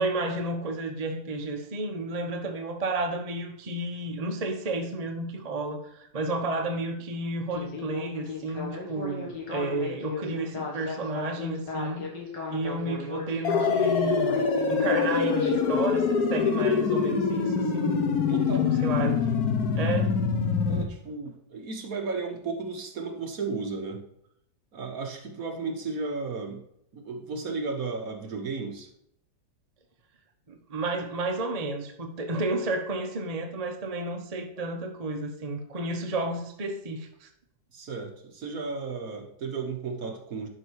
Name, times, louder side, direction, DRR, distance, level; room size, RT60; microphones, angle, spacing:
voice 1, 0.0-12.1 12.5-18.0 18.7-19.3 19.7-20.2 30.5-37.3, right 2 dB, 30° right, 3 dB, 0.7 m, -31 dB
Speech synthesizer, 7.5-15.8, left 4 dB, 80° left, 2.6 m, -36 dB
sound 1, 13.4-20.8, left 5 dB, 60° left, 1.4 m, -25 dB
voice 2, 18.3-18.8 20.7-24.0 24.7-26.6 26.9-28.9 37.7-40.5, right 4 dB, 55° right, 3 dB, 1.6 m, -34 dB
11.0 x 5.4 x 4.7 m, 0.75 s
omnidirectional pair, 1.9 m